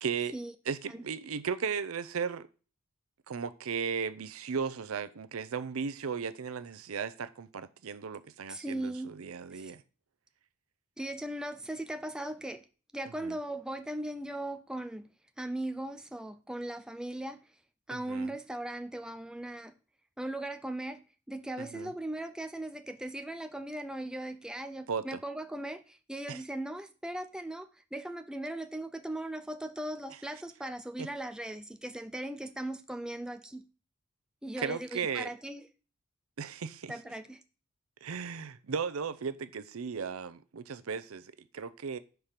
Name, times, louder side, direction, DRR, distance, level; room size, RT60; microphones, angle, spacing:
voice 1, 0.0-0.3 0.7-2.5 3.3-9.8 13.1-13.4 17.9-18.3 21.6-21.9 24.9-25.2 26.3-26.4 31.0-31.1 34.6-35.3 36.4-36.9 38.0-42.0, right 6 dB, 75° right, 0.6 m, -36 dB
voice 2, 8.5-9.2 9.5-9.7 11.0-12.6 12.9-15.1 15.4-17.4 17.9-19.7 20.2-21.0 21.3-33.6 34.4-35.7 36.9-37.4, right 1 dB, 5° right, 0.4 m, -38 dB
5.1 x 4.6 x 5.7 m
head